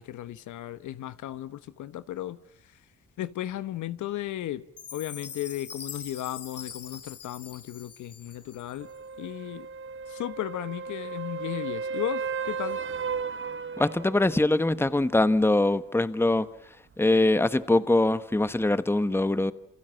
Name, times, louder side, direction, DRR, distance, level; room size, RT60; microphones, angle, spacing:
voice 1, 0.0-2.4 3.2-4.6 4.9-8.9 9.2-9.7 10.1-12.8, left 13 dB, 75° left, 1.1 m, -35 dB
Chime, 4.8-9.0, left 6 dB, 50° left, 2.3 m, -43 dB
sound 1, 8.8-14.5 18.6-18.7, right 5 dB, 40° right, 1.1 m, -34 dB
voice 2, 13.8-16.5 17.0-19.5, left 2 dB, 10° left, 1.2 m, -23 dB
28.0 x 27.5 x 7.7 m
cardioid pair, 90°, 30 cm